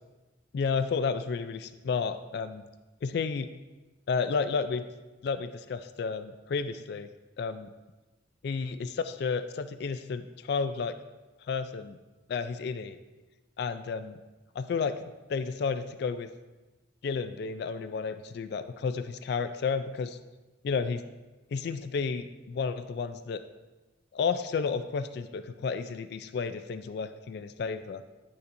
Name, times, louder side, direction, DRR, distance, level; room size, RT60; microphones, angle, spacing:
voice 1, 0.5-2.6 3.0-3.5 4.1-4.8 5.2-7.1 7.4-7.7 8.4-11.0 11.4-12.0 12.3-13.0 13.6-14.2 14.6-15.0 15.3-16.3 17.0-20.2 20.6-21.0 21.5-23.4 24.1-28.0, left 5 dB, 60° left, 11 dB, 0.3 m, -31 dB
9.8 x 6.9 x 2.6 m, 1.2 s
head